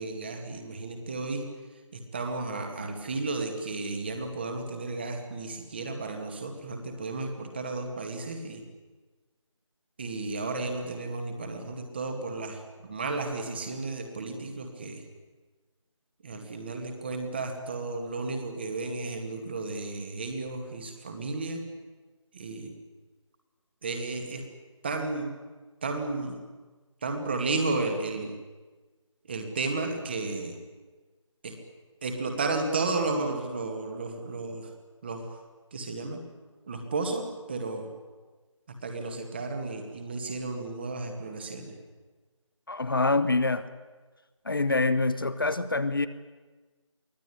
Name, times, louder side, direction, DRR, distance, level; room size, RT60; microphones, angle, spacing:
voice 1, 0.0-1.5 1.9-8.6 10.0-15.0 16.2-21.6 22.3-22.7 23.8-24.4 24.8-25.3 25.8-26.4 27.0-28.4 29.3-30.6 31.4-31.6 32.0-34.7 35.0-35.4 35.7-36.2 36.7-37.9 38.7-41.8, right 3 dB, 20° right, 5 dB, 2.1 m, -33 dB
voice 2, 42.7-43.6 44.5-46.1, left 3 dB, 45° left, 12 dB, 1.0 m, -25 dB
23.5 x 17.0 x 9.9 m, 1.3 s
figure-of-eight pair, 160°, 17 cm